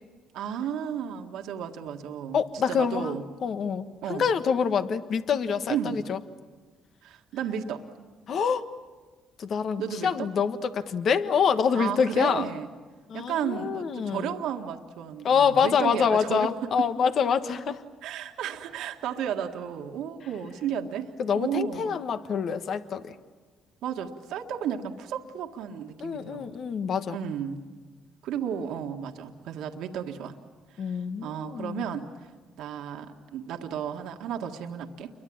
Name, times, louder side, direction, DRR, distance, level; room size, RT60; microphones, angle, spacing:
voice 1, 0.3-3.2 4.0-4.2 5.7-6.0 7.0-7.8 9.8-10.3 11.7-12.7 13.1-16.5 16.8-16.9 18.0-21.1 21.3-22.0 23.8-26.5 27.1-27.6 28.2-30.4 30.7-32.1 32.6-35.1, right 8 dB, 80° right, 4 dB, 1.8 m, -33 dB
voice 2, 2.3-3.2 3.4-6.2 8.3-8.6 9.4-12.5 13.1-14.3 15.2-17.8 21.2-23.1 26.0-27.2 30.8-31.9, left 6 dB, 60° left, 10 dB, 1.4 m, -26 dB
29.0 x 23.5 x 8.8 m, 1.4 s
supercardioid pair, 70°, 0 cm